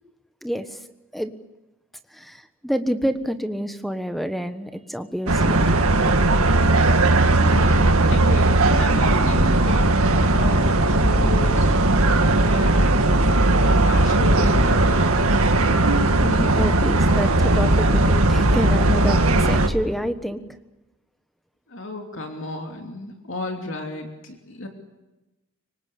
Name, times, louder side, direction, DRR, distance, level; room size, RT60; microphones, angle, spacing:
voice 1, 0.4-0.8 1.1-1.3 2.1-5.7 16.2-20.4, equal, ahead, 9 dB, 1.2 m, -28 dB
sound 1, 5.3-19.7, right 2 dB, 75° right, 1.9 m, -18 dB
voice 2, 7.4-11.8 12.5-15.5 21.7-24.7, left 2 dB, 55° left, 3 dB, 3.0 m, -34 dB
25.0 x 25.0 x 8.5 m, 1.0 s
head